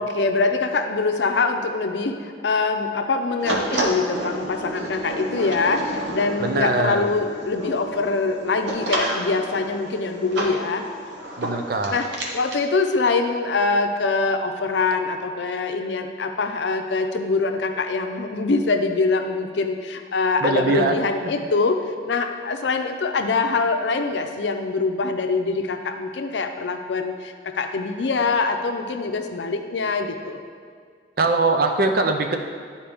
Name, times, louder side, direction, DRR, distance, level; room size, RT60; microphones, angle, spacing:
voice 1, 0.0-10.8 11.9-12.1 12.3-21.8 22.0-30.4, left 3 dB, 85° left, 6 dB, 0.5 m, -24 dB
sound 1, 3.4-12.6, right 1 dB, 85° right, 1.0 m, -30 dB
voice 2, 6.4-7.0 11.4-12.0 20.4-21.0 31.2-32.4, right 3 dB, 55° right, 5 dB, 0.6 m, -21 dB
10.0 x 4.3 x 3.5 m, 2.1 s
head